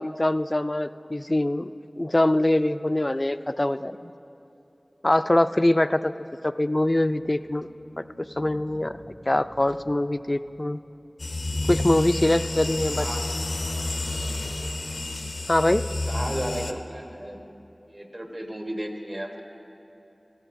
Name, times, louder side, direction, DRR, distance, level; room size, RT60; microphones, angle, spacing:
voice 1, 0.0-1.7 2.0-4.1 5.0-6.1 6.4-7.7 8.0-8.1 8.4-9.0 9.3-10.8 11.7-13.1 15.5-15.8, left 1 dB, 35° left, 12 dB, 0.3 m, -23 dB
sound 1, 6.9-11.3, equal, 90° right, 2.6 m, -50 dB
sound 2, 11.2-16.7, left 2 dB, 85° left, 0.6 m, -30 dB
voice 2, 12.8-13.2 16.1-17.4 17.9-19.4, right 1 dB, 40° right, 2 dB, 1.2 m, -34 dB
18.0 x 14.5 x 2.6 m, 2.9 s
wide cardioid pair, 40°, 0 cm